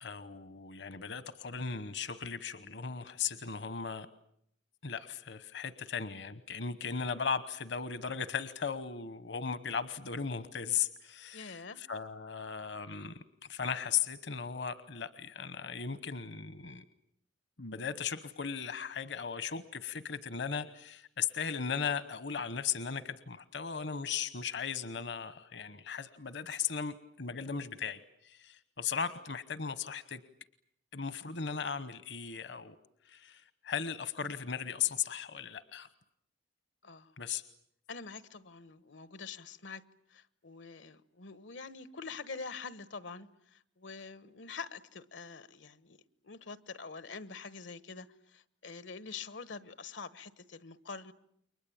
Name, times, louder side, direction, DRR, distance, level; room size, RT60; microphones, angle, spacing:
voice 1, 0.0-4.1 4.8-13.2 13.5-16.8 17.6-30.2 30.9-32.8 33.0-35.9 37.2-37.4, left 6 dB, 70° left, 14 dB, 1.0 m, -37 dB
voice 2, 11.3-11.8 36.8-37.1 37.9-39.8 40.1-46.0 46.2-51.1, left 4 dB, 85° left, 15 dB, 1.2 m, -45 dB
29.5 x 23.0 x 8.7 m, 0.71 s
head